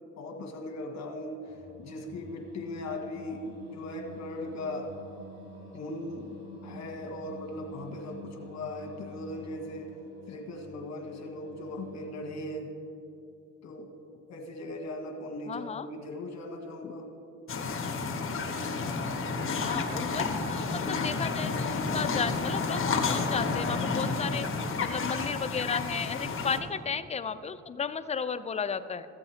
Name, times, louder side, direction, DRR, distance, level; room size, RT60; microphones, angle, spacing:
voice 1, 0.2-1.4 1.8-4.9 5.7-6.4 6.6-9.9 10.3-12.7 13.6-13.9 14.3-17.1, left 1 dB, 60° left, 3 dB, 1.5 m, -38 dB
Singing, 1.5-12.6, equal, 35° right, 3.0 m, -49 dB
voice 2, 15.5-15.9 19.6-24.5 24.8-29.1, left 6 dB, 20° left, 12 dB, 0.4 m, -34 dB
sound 1, 17.5-26.6, left 4 dB, 45° left, 1.3 m, -31 dB
14.5 x 7.8 x 4.4 m, 2.6 s
cardioid pair, 90°, 30 cm